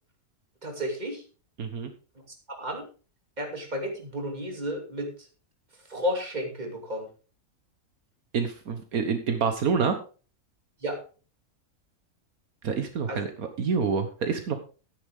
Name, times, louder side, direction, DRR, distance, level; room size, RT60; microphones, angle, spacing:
voice 1, 0.6-1.2 2.5-2.9 3.4-5.1 5.9-7.1 10.8-11.0 13.1-13.2, equal, 30° right, 2 dB, 2.9 m, -32 dB
voice 2, 1.6-1.9 8.3-9.9 12.6-14.6, right 5 dB, 75° right, 7 dB, 1.6 m, -27 dB
12.5 x 10.0 x 3.6 m, 0.36 s
omnidirectional pair, 1.6 m